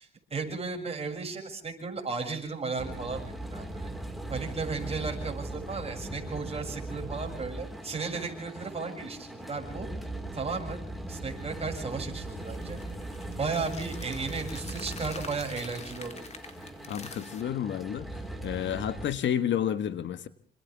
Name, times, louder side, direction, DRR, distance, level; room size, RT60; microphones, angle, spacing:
voice 1, 0.0-3.9 4.3-9.9 10.3-12.8 13.4-16.2, right 4 dB, 30° right, 2 dB, 7.1 m, -35 dB
sound 1, 2.8-19.1, right 1 dB, ahead, 4.8 m, -39 dB
sound 2, 12.4-17.4, left 4 dB, 35° left, 4.2 m, -46 dB
voice 2, 16.9-18.1 18.4-20.3, left 9 dB, 65° left, 13 dB, 1.5 m, -30 dB
28.0 x 26.5 x 3.6 m, 0.43 s
cardioid pair, 90°, 20 cm